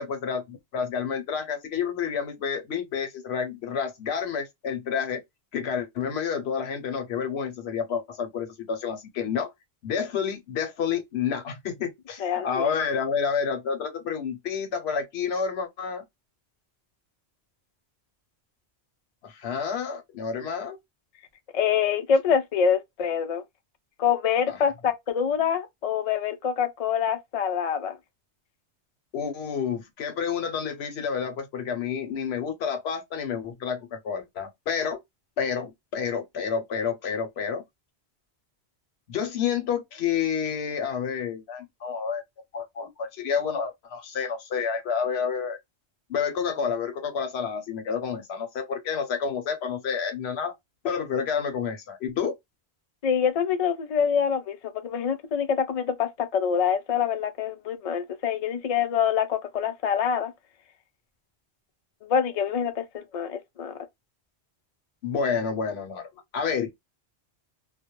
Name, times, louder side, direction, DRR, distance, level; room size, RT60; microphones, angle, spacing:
voice 1, 0.0-5.2 5.5-9.5 9.8-16.0 19.2-20.8 24.5-24.6 29.1-35.0 35.4-37.6 39.1-42.2 42.5-45.6 46.1-50.5 50.8-52.4 65.0-66.7, left 6 dB, 75° left, 0.9 m, -29 dB
voice 2, 12.2-12.7 21.5-23.4 24.0-28.0 53.0-60.3 62.0-63.7, left 7 dB, 55° left, 0.4 m, -25 dB
2.2 x 2.1 x 2.9 m
omnidirectional pair, 1.1 m